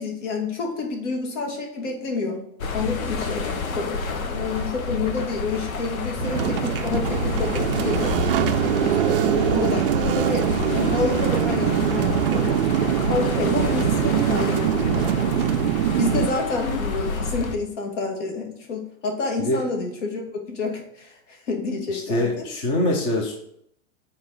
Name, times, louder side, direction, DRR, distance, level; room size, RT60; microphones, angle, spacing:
voice 1, 0.0-2.4 2.7-8.2 8.6-12.6 13.1-15.4 16.0-22.5, left 4 dB, 60° left, 2 dB, 2.5 m, -29 dB
sound 1, 2.6-17.5, left 4 dB, 90° left, 1.4 m, -29 dB
sound 2, 6.2-16.3, right 11 dB, 45° right, 0.4 m, -23 dB
voice 2, 21.9-23.3, left 1 dB, 15° left, 1 dB, 0.5 m, -24 dB
7.8 x 4.4 x 6.3 m, 0.72 s
supercardioid pair, 165°, 41 cm